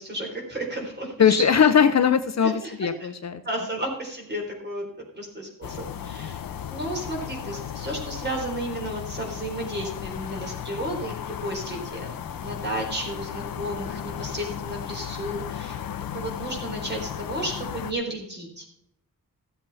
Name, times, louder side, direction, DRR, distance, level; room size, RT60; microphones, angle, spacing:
voice 1, 0.0-1.5 2.4-3.1 3.4-12.1 12.3-15.8 16.1-18.6, right 1 dB, 30° right, 0 dB, 3.9 m, -33 dB
voice 2, 1.2-3.4, left 7 dB, 55° left, 10 dB, 0.7 m, -20 dB
sound 1, 5.6-17.9, left 9 dB, 90° left, 0.7 m, -35 dB
15.0 x 7.8 x 4.1 m, 0.71 s
wide cardioid pair, 175°, 33 cm